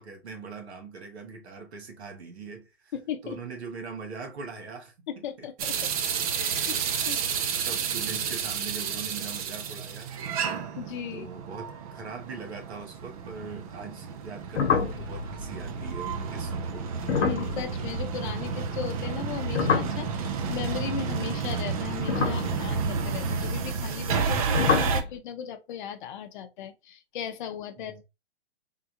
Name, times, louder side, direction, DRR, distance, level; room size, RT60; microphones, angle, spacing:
voice 1, 0.0-2.9 3.2-4.9 5.4-5.7 6.7-10.1 11.1-16.9 27.8-28.0, right 4 dB, 75° right, 1.4 m, -41 dB
voice 2, 2.9-3.4 5.1-5.8 6.3-6.8 7.0-7.2 10.8-11.3 17.2-28.0, left 8 dB, 50° left, 0.6 m, -37 dB
sound 1, 5.6-25.0, right 6 dB, 35° right, 0.4 m, -31 dB
sound 2, 14.5-18.9 19.2-21.3 21.9-24.3 24.5-25.1, left 6 dB, 85° left, 0.8 m, -29 dB
3.6 x 2.3 x 2.9 m
hypercardioid pair, 140°, 33 cm